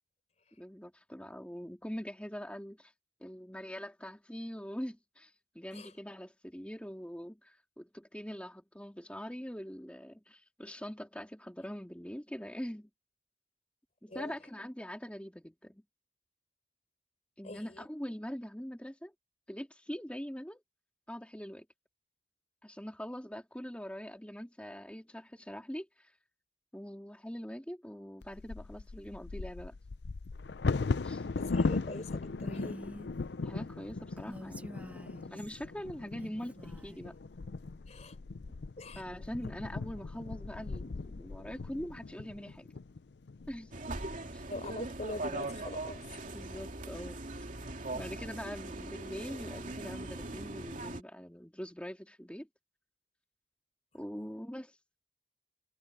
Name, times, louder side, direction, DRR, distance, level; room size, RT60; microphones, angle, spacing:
voice 1, 0.6-2.9 3.2-12.9 14.0-15.8 17.4-19.1 19.5-20.6 21.1-21.6 22.6-26.1 26.7-29.7 31.0-31.3 33.4-37.2 38.9-42.7 43.5-43.7 44.3-44.4 46.2-47.2 47.9-52.5 53.9-54.7, equal, 5° left, 3.0 m, -43 dB
voice 2, 17.4-17.9 31.3-32.8 37.9-38.2 38.8-39.0 44.5-46.0 54.2-54.4, left 2 dB, 40° left, 4.3 m, -43 dB
Bird vocalization bird call bird song / Wind / Thunder, 28.2-44.1 44.7-44.8 45.2-45.6 46.0-46.6, left 3 dB, 70° left, 0.6 m, -38 dB
Female speech woman speaking, 32.4-33.1 34.2-35.6 36.2-37.1, equal, 10° right, 2.4 m, -48 dB
sound 1, 43.7-51.0, right 2 dB, 50° right, 2.7 m, -40 dB
head